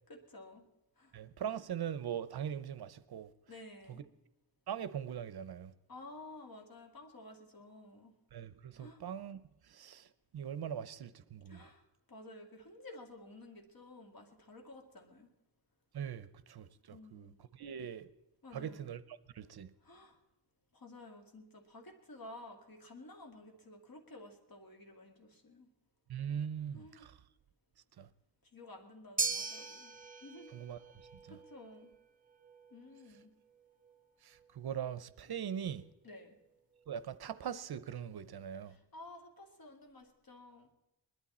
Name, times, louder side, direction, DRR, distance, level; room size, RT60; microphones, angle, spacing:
voice 1, 0.1-0.6 1.0-1.1 3.5-4.0 5.9-8.1 8.8-9.0 11.5-15.3 16.9-17.4 18.4-18.8 19.8-20.2 20.7-25.7 26.7-27.1 28.5-30.6 31.3-31.9 32.7-33.3 36.0-36.3 38.7-40.7, left 2 dB, 55° left, 2.2 m, -53 dB
voice 2, 1.1-3.3 4.7-5.7 8.3-9.4 9.7-10.1 10.3-11.7 15.9-18.1 18.5-19.0 19.3-19.7 26.1-27.1 28.0-28.1 30.5-30.8 34.2-35.9 36.9-38.8, right 8 dB, 60° right, 0.7 m, -41 dB
sound 1, 29.2-37.6, right 4 dB, 20° right, 0.7 m, -43 dB
20.5 x 12.0 x 4.2 m
wide cardioid pair, 150°, 42 cm